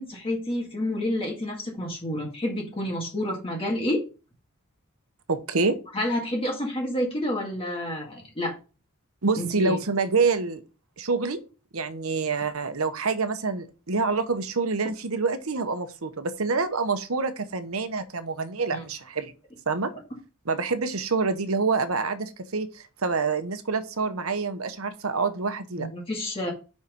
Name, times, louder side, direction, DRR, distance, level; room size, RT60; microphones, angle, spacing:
voice 1, 0.0-4.0 5.9-8.6 9.4-9.8 18.7-18.8 25.8-26.5, left 1 dB, 25° left, 1.9 m, -29 dB
voice 2, 5.3-5.7 9.2-10.6 11.0-11.4 11.7-19.3 19.7-19.9 20.5-25.9, right 4 dB, 75° right, 1.0 m, -27 dB
5.7 x 5.6 x 5.2 m
head